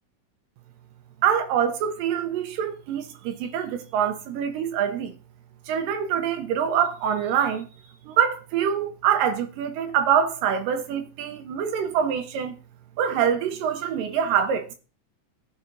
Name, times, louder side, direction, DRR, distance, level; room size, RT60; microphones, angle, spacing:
voice 1, 1.2-5.2 5.7-7.7 8.1-12.6 13.0-14.8, right 8 dB, 80° right, 2.4 m, -25 dB
15.5 x 5.5 x 2.6 m
omnidirectional pair, 3.9 m